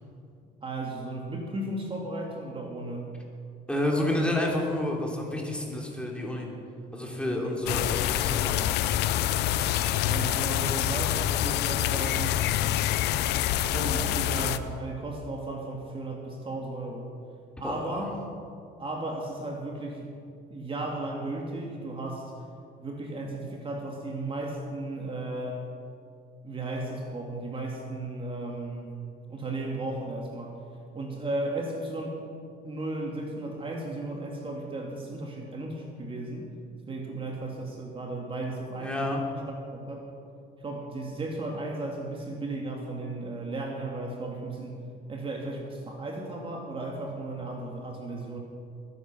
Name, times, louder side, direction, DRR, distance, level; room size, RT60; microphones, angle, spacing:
voice 1, 0.6-3.1 10.0-12.5 13.6-17.1 17.6-18.2 18.8-20.1 20.5-22.3 22.8-25.7 26.4-28.9 29.3-30.6 30.9-32.2 32.6-36.5 36.9-39.0 39.7-40.1 40.6-44.8 45.1-48.4, right 2 dB, 30° right, 0 dB, 2.2 m, -35 dB
voice 2, 3.7-6.5 6.9-8.6 17.6-18.0 38.8-39.2, left 1 dB, 5° left, -1 dB, 3.1 m, -29 dB
sound 1, 7.7-14.6, left 12 dB, 80° left, 0.7 m, -26 dB
21.5 x 10.0 x 6.1 m, 2.4 s
cardioid pair, 110°, 17 cm